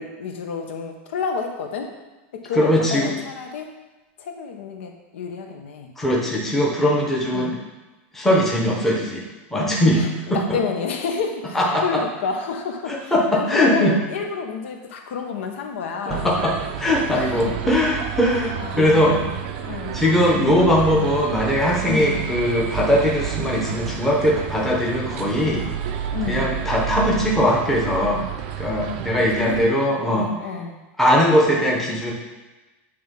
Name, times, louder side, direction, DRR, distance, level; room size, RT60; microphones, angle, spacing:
voice 1, 0.0-1.9 2.3-3.7 4.2-5.9 7.3-7.5 9.9-10.1 10.3-16.3 17.1-17.5 18.6-20.1 20.9-21.2 21.9-22.2 26.1-26.5 29.1-29.6 30.1-30.8, left 5 dB, 75° left, 3 dB, 1.1 m, -30 dB
voice 2, 2.5-3.1 6.0-7.6 8.1-9.2 9.5-10.4 11.5-12.0 12.9-13.9 16.1-19.3 19.9-25.6 26.3-28.3 28.6-30.3 31.0-32.1, equal, 5° left, -3 dB, 0.9 m, -20 dB
sound 1, 16.1-29.7, right 9 dB, 45° right, 0.5 m, -30 dB
8.7 x 3.5 x 5.3 m, 1.1 s
supercardioid pair, 180°, 7 cm